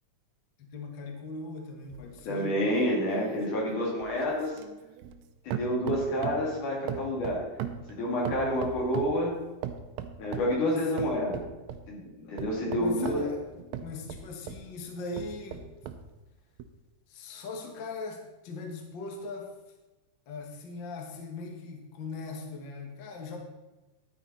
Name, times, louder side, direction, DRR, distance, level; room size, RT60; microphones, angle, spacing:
voice 1, 0.6-2.6 10.6-10.8 12.8-13.4 13.8-15.6 17.1-19.5 20.3-23.4, left 3 dB, 45° left, 2 dB, 1.8 m, -40 dB
sound 1, 1.9-5.2 5.5-6.5 6.9-9.2 9.6-10.6 11.0-11.9 12.4-14.7 15.1-16.1 16.6-16.7, right 9 dB, 75° right, 1.8 m, -38 dB
voice 2, 2.3-4.6 5.4-7.4 7.9-9.4 10.2-11.4 11.9-13.2, equal, 90° left, -2 dB, 4.1 m, -29 dB
11.0 x 9.2 x 4.2 m, 1.1 s
omnidirectional pair, 3.4 m